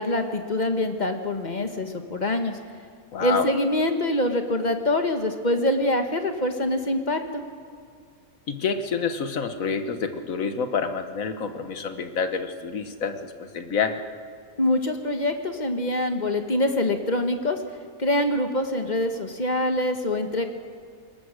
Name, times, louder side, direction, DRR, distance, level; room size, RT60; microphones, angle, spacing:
voice 1, 0.0-2.6 3.2-7.4 14.6-17.6 18.0-20.5, left 1 dB, 30° left, 6 dB, 1.4 m, -25 dB
voice 2, 3.1-3.5 8.5-14.0, left 5 dB, 70° left, 8 dB, 1.6 m, -28 dB
21.5 x 19.5 x 6.4 m, 2.2 s
omnidirectional pair, 1.5 m